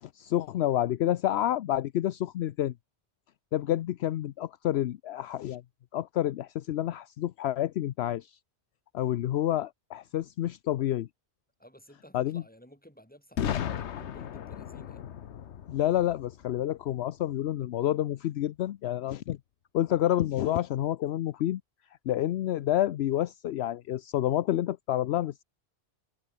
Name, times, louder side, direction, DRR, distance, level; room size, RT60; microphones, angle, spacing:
voice 1, 0.1-2.7 3.5-5.6 5.9-8.4 8.9-11.1 12.1-12.4 15.7-19.4 19.7-21.6 22.1-25.4, left 12 dB, 75° left, 0.8 m, -29 dB
voice 2, 11.6-15.0, equal, 10° left, 7.4 m, -54 dB
Boom, 13.4-17.2, left 9 dB, 90° left, 1.2 m, -36 dB
omnidirectional pair, 1.1 m